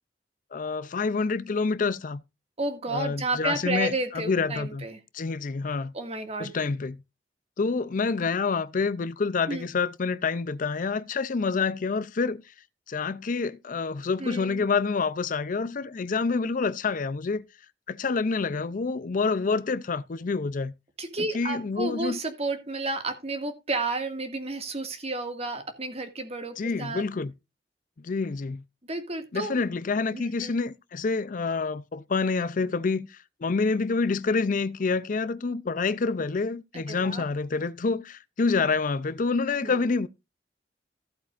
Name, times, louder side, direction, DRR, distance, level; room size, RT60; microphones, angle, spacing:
voice 1, 0.5-2.2 2.9-4.8 5.1-5.9 6.4-7.0 7.6-12.4 12.9-17.4 17.9-20.7 21.3-22.2 26.6-27.3 28.0-28.6 29.3-40.1, left 4 dB, 50° left, 0.5 m, -27 dB
voice 2, 2.6-5.0 5.9-6.5 9.5-9.7 14.2-14.7 21.0-27.0 28.9-29.5 30.1-30.5 36.7-37.2 39.6-39.8, right 2 dB, 35° right, 2.0 m, -32 dB
15.0 x 8.3 x 2.5 m
head